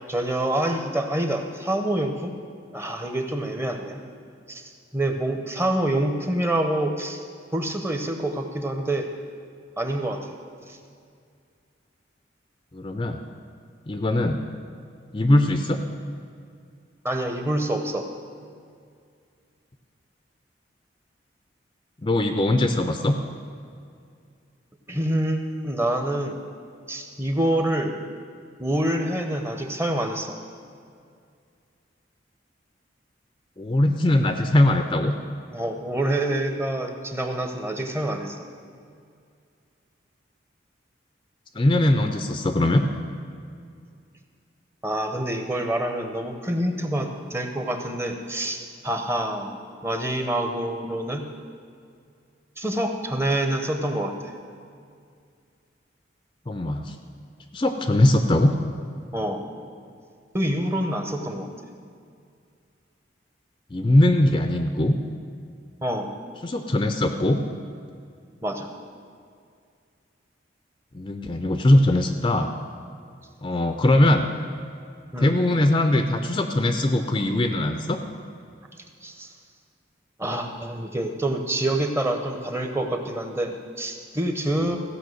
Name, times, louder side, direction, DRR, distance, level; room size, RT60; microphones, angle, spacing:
voice 1, 0.1-2.4 2.7-4.0 4.5-7.2 7.5-9.1 9.8-10.3 10.7-10.8 17.0-18.1 24.9-26.4 26.9-27.9 28.6-30.4 35.5-38.4 44.8-49.5 49.8-51.2 52.6-54.3 59.1-59.4 60.3-61.5 65.8-66.1 68.4-68.7 75.1-75.4 79.0-79.3 80.2-84.8, right 1 dB, 15° right, 5 dB, 0.8 m, -26 dB
voice 2, 12.7-13.2 13.9-14.5 15.1-15.8 22.0-23.2 33.6-35.2 41.5-42.9 56.5-56.9 57.5-58.6 63.7-65.0 66.4-67.4 70.9-72.5 73.4-74.3 75.2-78.0 84.7-84.8, left 1 dB, 25° left, 6 dB, 0.5 m, -21 dB
15.5 x 5.7 x 7.8 m, 2.3 s
head